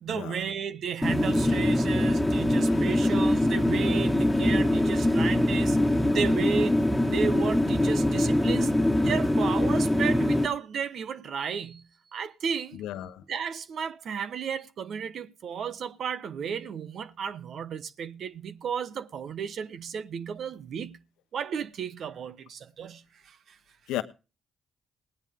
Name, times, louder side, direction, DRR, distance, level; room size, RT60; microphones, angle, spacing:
voice 1, 0.0-5.8 6.1-8.7 9.0-11.8 12.1-12.8 13.3-21.0 21.3-23.6, right 7 dB, 65° right, 1.0 m, -33 dB
sound 1, 1.0-10.5, left 1 dB, 5° left, 1.7 m, -23 dB
voice 2, 12.8-13.2 23.9-24.0, left 13 dB, 85° left, 1.0 m, -34 dB
19.0 x 9.8 x 3.7 m
supercardioid pair, 50°, 0 cm